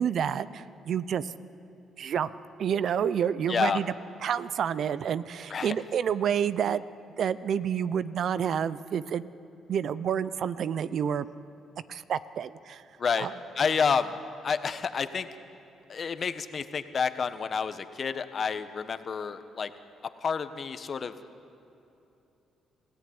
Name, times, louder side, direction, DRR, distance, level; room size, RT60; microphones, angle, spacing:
voice 1, 0.0-1.3 2.0-2.3 2.6-3.9 4.2-6.8 7.2-9.3 9.7-11.3 11.9-12.8 13.2-13.3, right 8 dB, 65° right, 16 dB, 0.7 m, -29 dB
voice 2, 3.5-3.8 5.5-5.7 13.0-13.3 13.5-14.1 14.4-15.3 15.9-19.7 20.2-21.1, left 6 dB, 45° left, 10 dB, 1.3 m, -29 dB
26.5 x 16.5 x 9.6 m, 2.8 s
cardioid pair, 90°, 0 cm